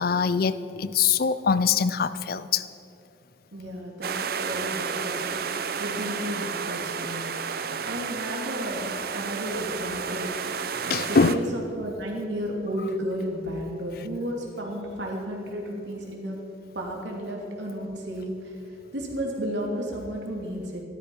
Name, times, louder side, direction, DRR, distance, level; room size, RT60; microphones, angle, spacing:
voice 1, 0.0-2.7 7.6-7.8 10.9-11.4, left 5 dB, 55° left, 15 dB, 0.5 m, -23 dB
voice 2, 3.5-5.5 5.8-7.2 7.8-10.3 10.8-16.4 16.7-18.6 18.9-20.8, equal, 80° right, -1 dB, 2.7 m, -33 dB
sound 1, 4.0-11.4, right 6 dB, 55° right, 0.6 m, -31 dB
14.5 x 12.5 x 5.5 m, 2.8 s
head